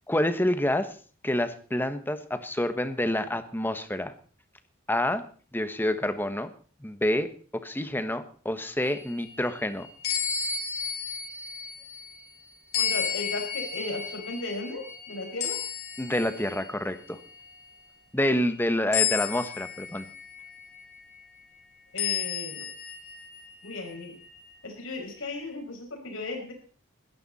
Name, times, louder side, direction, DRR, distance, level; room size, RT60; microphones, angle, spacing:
voice 1, 0.1-0.9 1.2-4.1 4.9-5.2 5.5-6.5 6.8-9.9 16.0-17.2 18.1-20.1, left 1 dB, 10° left, 10 dB, 1.2 m, -28 dB
sound 1, 8.8-12.3 12.7-16.7 17.2-17.5 18.9-21.0 22.0-23.9, left 8 dB, 50° left, 5.4 m, -32 dB
voice 2, 12.8-15.6 21.9-22.7 23.6-24.1 24.6-26.5, left 2 dB, 70° left, 2 dB, 6.2 m, -36 dB
20.5 x 13.5 x 4.2 m, 0.41 s
head